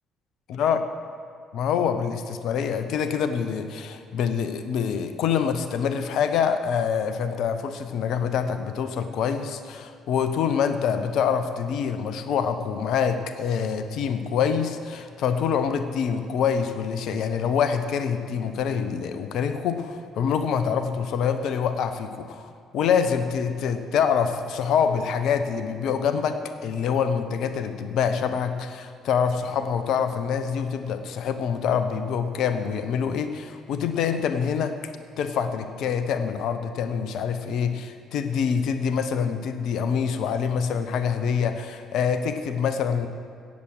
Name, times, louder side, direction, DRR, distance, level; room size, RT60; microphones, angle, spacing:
voice 1, 0.5-0.8 1.5-34.8 35.2-43.1, left 7 dB, 55° left, 10 dB, 0.8 m, -25 dB
17.0 x 7.4 x 6.5 m, 2.1 s
figure-of-eight pair, 50°, 0 cm